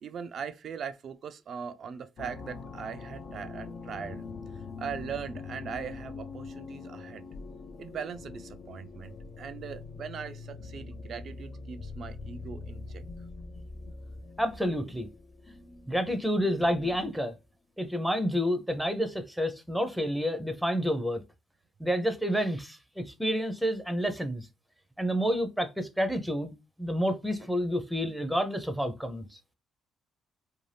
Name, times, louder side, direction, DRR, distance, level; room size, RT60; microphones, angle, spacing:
voice 1, 0.0-4.2 4.8-7.2 7.8-13.0, right 7 dB, 55° right, 0.3 m, -40 dB
sound 1, 2.2-17.2, left 4 dB, 55° left, 0.4 m, -43 dB
voice 2, 14.4-15.1 15.9-17.3 17.8-21.2 21.8-24.5 25.0-26.5 26.8-29.2, equal, ahead, 0.5 m, -29 dB
2.6 x 2.2 x 3.2 m
cardioid pair, 90°, 0 cm